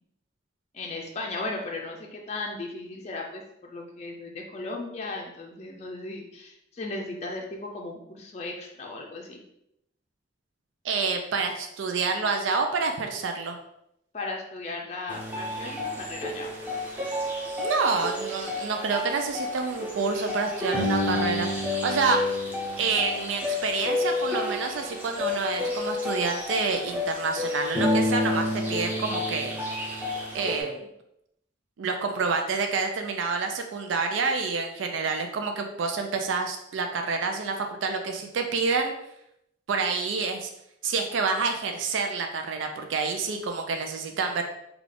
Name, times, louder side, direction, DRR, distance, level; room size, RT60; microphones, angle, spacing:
voice 1, 0.7-9.4 14.1-16.5, left 2 dB, 35° left, 0 dB, 0.4 m, -36 dB
voice 2, 10.8-13.6 17.6-22.2 22.8-29.5 30.3-30.9 31.8-38.9 39.7-40.5 40.8-44.4, right 4 dB, 85° right, 4 dB, 0.4 m, -28 dB
sound 1, 15.1-30.6, left 2 dB, 10° right, 0.7 m, -30 dB
3.5 x 2.3 x 3.8 m, 0.80 s
head